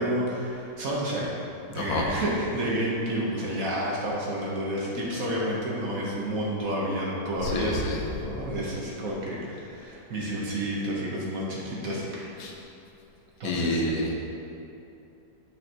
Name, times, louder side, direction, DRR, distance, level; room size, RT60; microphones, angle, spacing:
voice 1, 0.0-1.4 1.7-12.5 13.4-13.8, right 1 dB, 55° right, -4 dB, 1.4 m, -30 dB
voice 2, 7.4-8.0 12.4-12.5 13.4-14.1, left 1 dB, 85° left, -1 dB, 1.6 m, -28 dB
9.1 x 5.5 x 2.9 m, 2.8 s
omnidirectional pair, 2.0 m